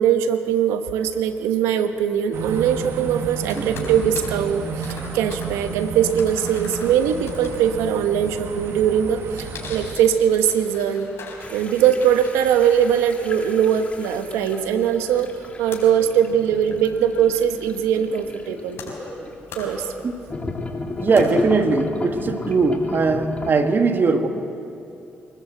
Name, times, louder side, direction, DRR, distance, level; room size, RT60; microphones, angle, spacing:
voice 1, 0.0-11.1 11.5-15.3 15.6-18.8 19.5-19.9, right 9 dB, 90° right, 8 dB, 1.1 m, -21 dB
sound 1, 2.3-10.0, right 5 dB, 70° right, 1.5 m, -32 dB
sound 2, 3.4-21.8, left 3 dB, 65° left, 4.8 m, -42 dB
voice 2, 3.6-3.9 20.0-20.2 21.0-24.3, right 4 dB, 50° right, 6 dB, 1.8 m, -20 dB
sound 3, 11.4-19.4 20.3-23.5, left 3 dB, 30° left, 2.9 m, -33 dB
24.5 x 13.5 x 8.0 m, 2.7 s
supercardioid pair, 60°, 5 cm